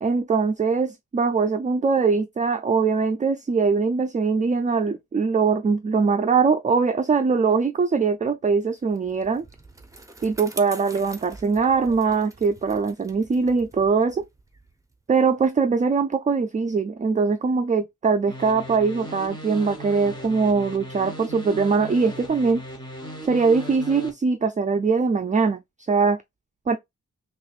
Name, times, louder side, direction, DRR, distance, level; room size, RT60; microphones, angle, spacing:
voice 1, 0.0-9.4 10.2-14.2 15.1-22.6 23.3-25.6 25.9-26.2 26.7-26.8, right 5 dB, 25° right, 0.3 m, -22 dB
Bicycle, 8.8-15.5, right 2 dB, 10° right, 0.8 m, -45 dB
sound 1, 18.3-24.1, equal, 15° left, 1.3 m, -37 dB
5.9 x 2.4 x 2.4 m
wide cardioid pair, 140°, 30 cm